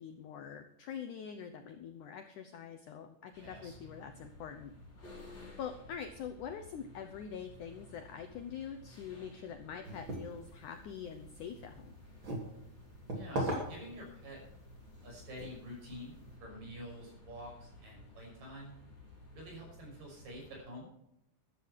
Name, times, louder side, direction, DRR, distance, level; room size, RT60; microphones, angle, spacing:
voice 1, 0.0-4.7 5.6-11.9, left 7 dB, 75° left, 7 dB, 1.9 m, -44 dB
sound 1, 3.3-20.6, left 2 dB, 25° left, 6.5 m, -55 dB
voice 2, 3.4-3.7 13.1-14.4 15.0-16.2 16.4-18.7 19.3-20.9, equal, 55° right, -1 dB, 7.4 m, -48 dB
sound 2, 9.8-16.4, right 1 dB, 30° right, 3.5 m, -42 dB
14.0 x 12.0 x 4.7 m, 0.80 s
omnidirectional pair, 4.7 m